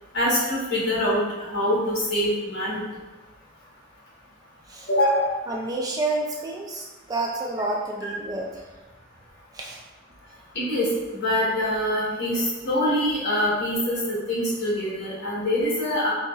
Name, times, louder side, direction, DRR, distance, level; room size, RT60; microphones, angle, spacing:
voice 1, 0.1-2.8 4.9-5.4 8.0-8.1 10.5-16.1, left 1 dB, 60° left, -7 dB, 1.4 m, -24 dB
voice 2, 5.5-8.5 9.6-9.8, right 2 dB, 20° right, -1 dB, 0.3 m, -29 dB
3.8 x 2.9 x 2.4 m, 1.2 s
head